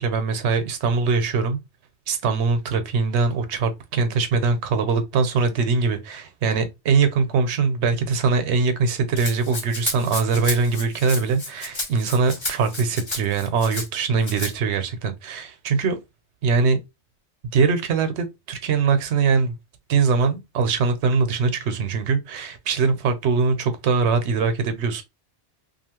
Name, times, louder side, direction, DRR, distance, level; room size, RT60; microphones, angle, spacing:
voice 1, 0.0-1.6 2.1-16.0 16.4-16.8 17.5-19.5 19.9-25.0, right 4 dB, 75° right, 0.9 m, -22 dB
Rattle (instrument), 9.2-13.9 14.2-14.5, left 2 dB, 30° left, 0.6 m, -32 dB
2.6 x 2.3 x 2.9 m
omnidirectional pair, 1.2 m